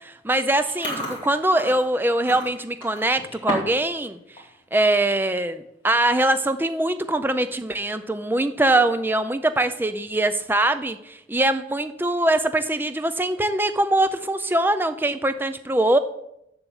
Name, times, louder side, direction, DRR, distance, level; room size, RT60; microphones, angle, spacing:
voice 1, 0.0-4.4 4.7-16.0, right 1 dB, 10° right, 11 dB, 0.4 m, -22 dB
Chewing mastication, 0.6-3.9 4.2-4.5 4.9-5.1 5.9-6.0 6.2-6.6 7.0-7.1 8.5-9.1, left 1 dB, 25° left, 2.3 m, -34 dB
7.0 x 7.0 x 7.0 m, 0.81 s
head